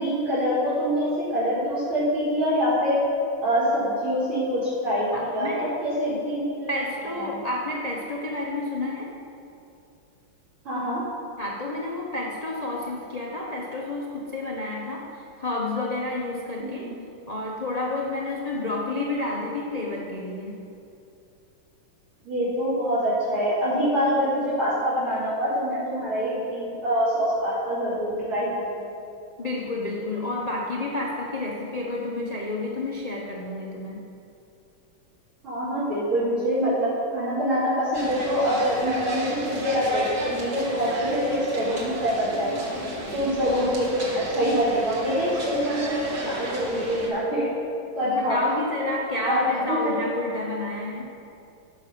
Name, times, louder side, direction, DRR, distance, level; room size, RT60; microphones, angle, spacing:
voice 1, 0.0-3.0 3.4-6.7 7.2-7.4 10.6-11.0 16.6-17.1 22.2-28.9 35.4-42.5 43.1-47.5 47.9-48.5 49.3-50.0, equal, 80° right, -11 dB, 3.2 m, -25 dB
voice 2, 5.1-5.7 6.7-9.1 11.4-16.9 17.3-20.6 29.4-34.0 48.0-51.2, left 2 dB, 60° left, -3 dB, 0.4 m, -30 dB
sound 1, 37.9-47.1, right 1 dB, 55° right, 2.2 m, -33 dB
11.0 x 5.5 x 6.7 m, 2.7 s
omnidirectional pair, 2.3 m